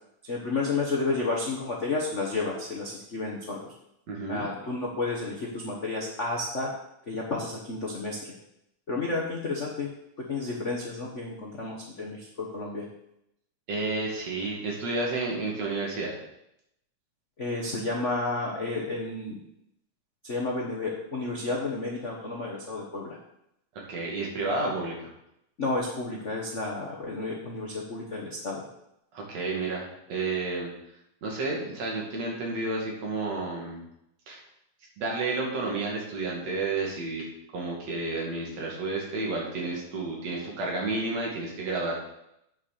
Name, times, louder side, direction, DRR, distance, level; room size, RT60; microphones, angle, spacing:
voice 1, 0.2-3.7 4.3-6.7 7.1-8.3 8.9-9.9 10.3-12.9 17.4-19.4 20.2-23.2 25.6-28.6, left 3 dB, 85° left, -2 dB, 0.6 m, -31 dB
voice 2, 4.1-4.5 13.7-16.2 23.9-25.1 29.1-30.7 31.2-33.8 34.3-34.4 35.0-37.3 37.5-41.9, right 3 dB, 60° right, -2 dB, 3.4 m, -31 dB
8.5 x 6.3 x 6.7 m, 0.80 s
omnidirectional pair, 3.5 m